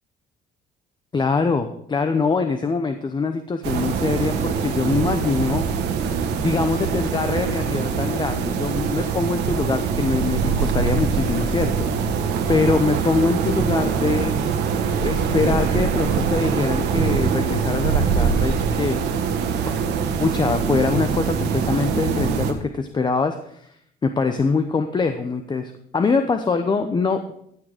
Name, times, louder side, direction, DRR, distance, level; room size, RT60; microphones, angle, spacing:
voice 1, 1.1-5.6 6.4-14.3 15.0-19.0 19.6-19.8 20.2-23.7 24.0-27.3, left 4 dB, 25° left, 7 dB, 0.8 m, -23 dB
sound 1, 3.6-22.5, right 6 dB, 80° right, 1.5 m, -23 dB
15.0 x 6.3 x 5.0 m, 0.71 s
cardioid pair, 110°, 17 cm